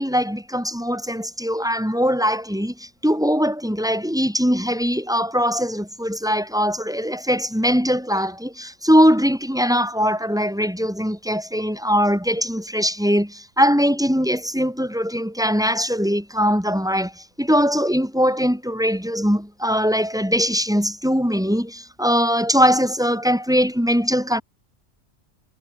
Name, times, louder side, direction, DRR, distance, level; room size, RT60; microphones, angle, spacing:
voice 1, 0.0-24.4, equal, 5° right, 8.0 m, -21 dB
omnidirectional pair, 1.3 m